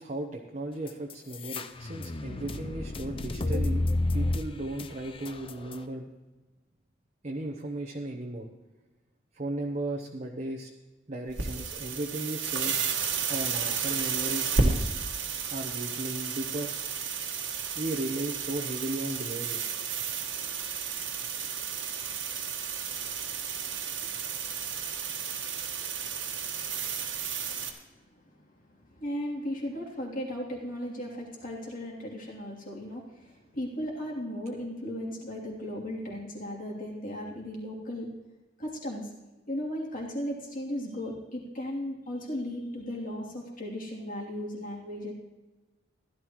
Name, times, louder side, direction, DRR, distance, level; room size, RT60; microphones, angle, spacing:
voice 1, 0.0-3.8 4.1-6.1 7.2-8.5 9.3-10.7 11.1-12.8 13.3-14.9 15.5-16.8 17.8-19.7, right 1 dB, 35° right, 1 dB, 1.0 m, -35 dB
sound 1, 0.9-5.8, left 2 dB, 30° left, 0.5 m, -31 dB
sound 2, 11.3-27.7, right 5 dB, 70° right, 1.6 m, -32 dB
voice 2, 23.5-27.6 28.0-38.1 38.6-39.1 39.5-45.1, equal, 45° left, -3 dB, 3.1 m, -37 dB
16.0 x 12.0 x 3.1 m, 1.1 s
head